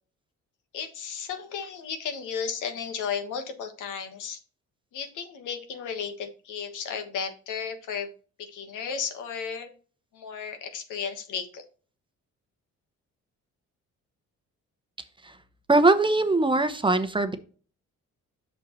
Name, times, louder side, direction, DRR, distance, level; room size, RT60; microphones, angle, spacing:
voice 1, 0.7-4.4 4.9-8.1 8.4-9.7 10.1-11.6, left 6 dB, 85° left, 6 dB, 1.4 m, -34 dB
voice 2, 15.7-17.4, right 2 dB, 15° right, 9 dB, 0.8 m, -21 dB
7.5 x 6.4 x 3.1 m, 0.39 s
cardioid pair, 90°, 30 cm